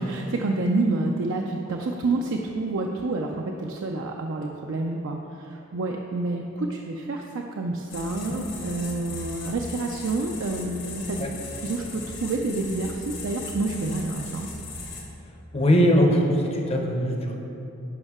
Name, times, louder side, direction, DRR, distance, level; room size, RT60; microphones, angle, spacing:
voice 1, 0.0-11.2 11.6-14.5, right 2 dB, 60° right, 1 dB, 0.4 m, -28 dB
sound 1, 7.9-15.0, left 3 dB, 65° left, 1.5 m, -38 dB
voice 2, 15.5-17.4, equal, 30° left, 2 dB, 0.7 m, -21 dB
10.5 x 5.4 x 3.6 m, 2.9 s
head